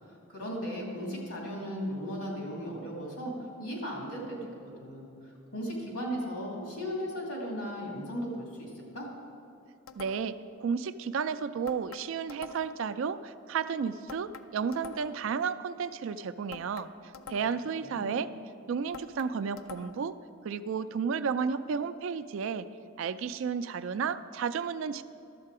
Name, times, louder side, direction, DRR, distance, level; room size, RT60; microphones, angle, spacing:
voice 1, 0.3-3.3 3.6-4.4 4.8-5.1 5.5-9.1 17.8-18.1, equal, 85° left, -2 dB, 2.7 m, -36 dB
sound 1, 9.9-10.5 11.7-12.9 14.1-15.3 16.5-17.7 18.9-20.2, left 6 dB, 70° left, 0.4 m, -46 dB
voice 2, 10.0-16.9 17.3-18.3 18.7-20.2 20.4-22.7 23.0-25.0, right 6 dB, 60° right, 13 dB, 0.3 m, -32 dB
11.5 x 7.4 x 4.8 m, 2.6 s
head